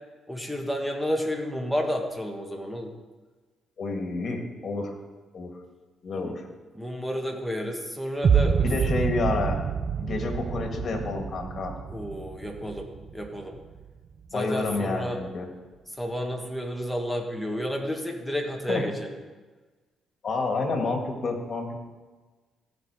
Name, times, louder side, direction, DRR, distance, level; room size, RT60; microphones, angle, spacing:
voice 1, 0.3-2.9 6.2-6.3 6.7-8.7 11.9-13.6 14.3-15.2 16.0-19.2, equal, ahead, 1 dB, 1.9 m, -31 dB
voice 2, 3.8-5.0 5.3-5.5 6.0-6.4 8.6-9.6 10.0-11.7 14.3-15.5 18.7-18.8 20.2-21.8, left 3 dB, 50° left, 3 dB, 2.1 m, -29 dB
sound 1, 8.2-14.2, right 6 dB, 45° right, 0.6 m, -27 dB
16.0 x 5.6 x 5.0 m, 1.3 s
cardioid pair, 90°, 0 cm